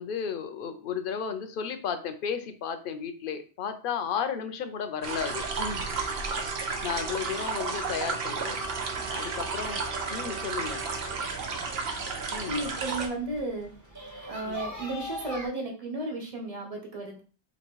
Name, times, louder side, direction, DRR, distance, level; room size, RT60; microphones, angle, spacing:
voice 1, 0.0-5.9 6.6-8.6 9.1-9.8 10.1-10.9 12.3-12.6 14.4-14.6, left 7 dB, 60° left, 9 dB, 0.7 m, -34 dB
sound 1, 5.0-13.1, right 4 dB, 65° right, 0.9 m, -33 dB
Trumpet, 5.1-11.3, right 5 dB, 85° right, 0.9 m, -41 dB
sound 2, 9.0-15.5, equal, 20° right, 0.8 m, -43 dB
voice 2, 12.5-13.7 14.3-17.2, right 2 dB, 35° right, 2 dB, 1.1 m, -34 dB
2.9 x 2.9 x 4.5 m, 0.37 s
omnidirectional pair, 1.1 m